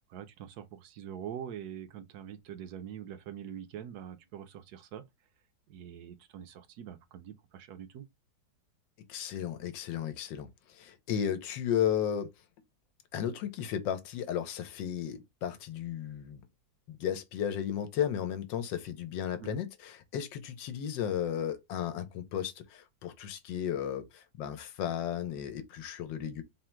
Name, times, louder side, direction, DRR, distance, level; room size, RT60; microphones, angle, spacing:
voice 1, 0.1-5.0 5.7-8.0 19.4-19.6, right 9 dB, 70° right, 1.0 m, -44 dB
voice 2, 9.1-12.3 13.1-16.4 16.9-26.4, left 9 dB, 90° left, 1.4 m, -34 dB
3.7 x 2.1 x 4.3 m
omnidirectional pair, 2.0 m